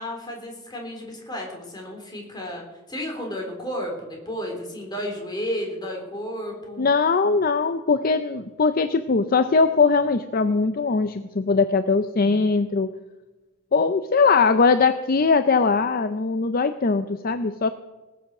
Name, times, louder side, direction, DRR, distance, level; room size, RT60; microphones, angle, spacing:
voice 1, 0.0-6.9 12.1-12.5, equal, 20° left, 1 dB, 3.8 m, -33 dB
voice 2, 6.8-12.9 13.7-17.7, left 4 dB, 45° left, 10 dB, 0.6 m, -21 dB
19.5 x 7.7 x 6.6 m, 1.1 s
head